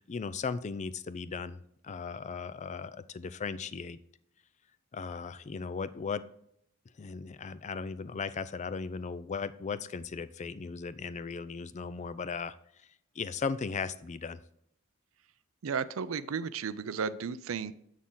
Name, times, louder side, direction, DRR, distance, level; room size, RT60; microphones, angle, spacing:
voice 1, 0.0-1.6 1.8-4.0 4.9-6.2 7.0-12.5 13.2-14.4, left 5 dB, 35° left, 15 dB, 0.4 m, -37 dB
voice 2, 15.6-17.7, right 6 dB, 70° right, 15 dB, 0.5 m, -34 dB
7.2 x 6.4 x 3.8 m, 0.72 s
head